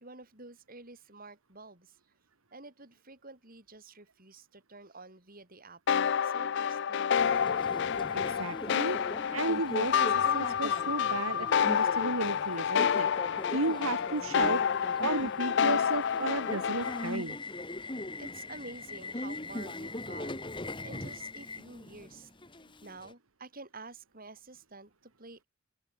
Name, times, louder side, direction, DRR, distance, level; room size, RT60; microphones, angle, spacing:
voice 1, 0.0-2.0 2.5-5.8 6.2-7.5 18.2-20.4 20.8-22.3 22.8-25.4, right 3 dB, 45° right, 5.8 m, -50 dB
sound 1, 5.9-17.2, left 7 dB, 55° left, 0.4 m, -29 dB
Subway metro underground, 7.2-23.1, left 2 dB, 25° left, 1.8 m, -41 dB
voice 2, 8.1-9.0 9.3-13.1 13.5-14.6 15.0-17.4, right 3 dB, 85° right, 2.0 m, -33 dB
open air
head